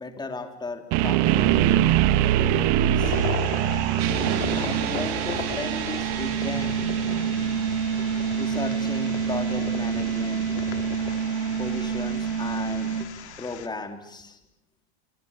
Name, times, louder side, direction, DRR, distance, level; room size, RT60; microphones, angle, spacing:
voice 1, 0.0-1.9 2.4-3.2 4.5-6.8 8.0-8.1 8.3-10.6 11.6-13.1 13.4-14.4, left 3 dB, 15° left, 6 dB, 3.6 m, -35 dB
sound 1, 0.9-12.9, right 12 dB, 50° right, 2.0 m, -25 dB
sound 2, 3.0-13.7, left 10 dB, 80° left, 2.8 m, -37 dB
sound 3, 4.0-13.0, right 7 dB, 65° right, 3.0 m, -28 dB
27.0 x 25.0 x 8.7 m, 0.82 s
hypercardioid pair, 115°, 33 cm